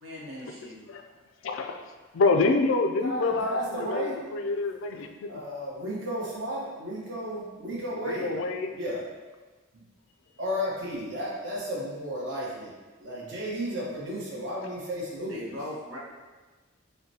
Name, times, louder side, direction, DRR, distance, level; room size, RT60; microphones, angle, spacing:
voice 1, 0.0-0.8 15.3-16.0, left 1 dB, 75° right, -5 dB, 1.2 m, -39 dB
voice 2, 1.4-1.9 2.1-5.3 8.0-8.7, left 3 dB, 70° left, 5 dB, 0.4 m, -27 dB
voice 3, 3.0-4.2 5.3-8.4 8.7-9.0 9.7-9.8 10.4-12.7 13.0-15.5, equal, 60° right, -5 dB, 1.1 m, -33 dB
6.4 x 2.2 x 2.8 m, 1.3 s
head